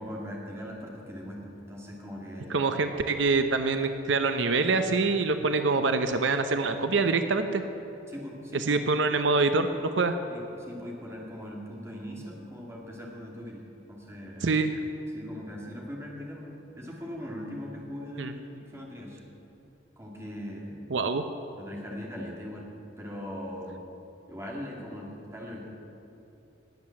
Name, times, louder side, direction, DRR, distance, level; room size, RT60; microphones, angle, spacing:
voice 1, 0.0-2.7 8.1-8.9 10.3-13.6 13.9-14.5 15.1-19.2 20.0-20.8 21.6-22.7 23.0-23.8 24.3-25.6, equal, 15° right, -3 dB, 2.5 m, -40 dB
voice 2, 2.5-7.6 8.7-10.1 14.4-14.7 18.2-18.3 20.9-21.2, right 3 dB, 75° right, 8 dB, 0.7 m, -25 dB
20.0 x 7.8 x 7.3 m, 2.9 s
head